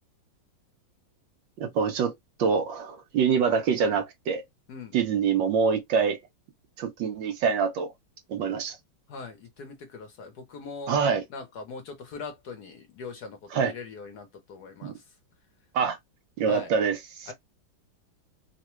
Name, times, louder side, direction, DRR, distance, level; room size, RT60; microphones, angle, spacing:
voice 1, 1.6-2.1 2.4-4.4 4.9-6.2 6.8-7.9 8.3-8.8 10.9-11.2 13.5-13.7 14.8-15.0 15.7-16.0 16.4-17.3, right 6 dB, 70° right, 1.4 m, -25 dB
voice 2, 9.1-10.9 11.3-15.0 16.5-16.7 17.3-17.4, left 4 dB, 60° left, 1.2 m, -41 dB
3.8 x 2.2 x 2.9 m
omnidirectional pair, 2.2 m